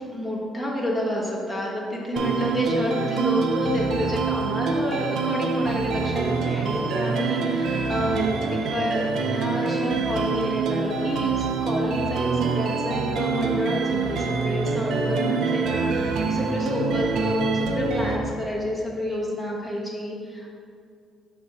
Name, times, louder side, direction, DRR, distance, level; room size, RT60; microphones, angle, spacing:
voice 1, 0.1-20.6, equal, 5° right, -4 dB, 1.3 m, -29 dB
sound 1, 2.2-18.2, right 4 dB, 75° right, 0.5 m, -25 dB
6.6 x 3.6 x 4.2 m, 2.3 s
cardioid pair, 110°, 0 cm